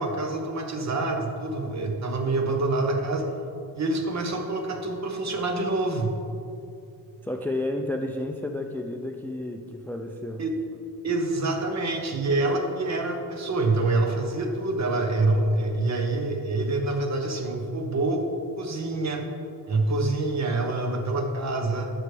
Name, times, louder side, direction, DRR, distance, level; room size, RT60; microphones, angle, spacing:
voice 1, 0.0-3.3 3.7-6.1 10.4-10.5 11.0-18.2 18.6-19.2 19.7-21.9, right 2 dB, 45° right, 4 dB, 1.1 m, -26 dB
voice 2, 7.2-10.4, left 1 dB, 5° left, 4 dB, 0.3 m, -31 dB
11.0 x 6.3 x 3.4 m, 2.6 s
cardioid pair, 110°, 39 cm